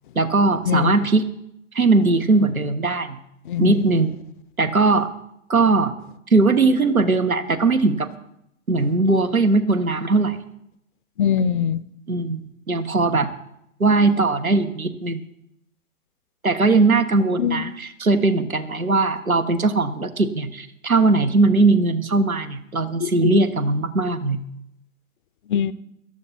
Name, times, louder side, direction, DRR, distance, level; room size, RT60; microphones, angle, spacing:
voice 1, 0.1-1.2 1.7-3.2 3.6-4.1 4.6-5.1 5.5-5.9 6.3-8.1 8.7-10.4 12.1-13.3 13.8-15.2 16.4-24.4, right 3 dB, 90° right, 8 dB, 1.5 m, -19 dB
voice 2, 3.5-3.8 11.2-11.8 17.4-17.7 23.0-23.4 25.5-25.7, left 9 dB, 40° left, 17 dB, 0.6 m, -22 dB
17.5 x 12.5 x 4.2 m, 0.78 s
figure-of-eight pair, 115°, 41 cm